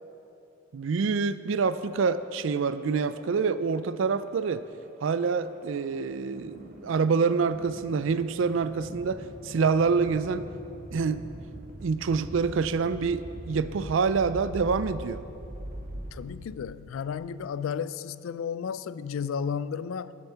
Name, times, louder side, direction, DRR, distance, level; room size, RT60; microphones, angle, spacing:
voice 1, 0.7-4.6 5.0-10.5 10.9-11.2 11.8-15.2, right 5 dB, 75° right, 0.4 m, -26 dB
sound 1, 1.7-16.8, equal, 45° right, 1.1 m, -44 dB
voice 2, 16.1-20.1, left 7 dB, 85° left, 0.3 m, -33 dB
10.5 x 7.9 x 5.7 m
head